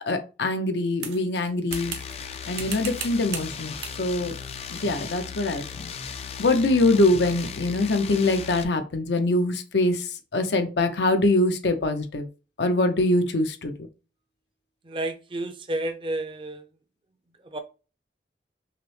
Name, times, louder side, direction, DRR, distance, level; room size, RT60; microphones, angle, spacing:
voice 1, 0.1-1.9 2.5-4.3 4.7-5.9 6.4-12.3 12.6-13.7, left 2 dB, 80° left, 0.6 m, -23 dB
sound 1, 1.0-2.3 2.5-3.5 3.8-4.0 4.8-5.0, right 7 dB, 85° right, 0.9 m, -37 dB
sound 2, 1.7-8.6, left 6 dB, 35° left, 0.3 m, -37 dB
voice 2, 14.8-16.6 17.4-17.6, right 1 dB, 30° right, 0.5 m, -31 dB
5.8 x 2.0 x 3.1 m
head